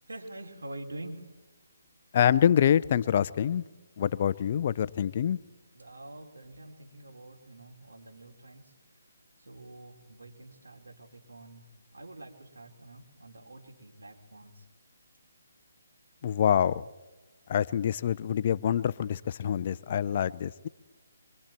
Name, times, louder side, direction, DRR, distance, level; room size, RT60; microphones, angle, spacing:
voice 1, 0.0-1.4 5.7-8.7 9.4-14.7, right 1 dB, 90° right, 4.0 m, -46 dB
voice 2, 2.1-3.6 4.0-5.4 16.2-16.8 17.5-20.7, left 9 dB, 40° left, 0.6 m, -26 dB
24.5 x 24.0 x 4.5 m
hypercardioid pair, 160°, 0 cm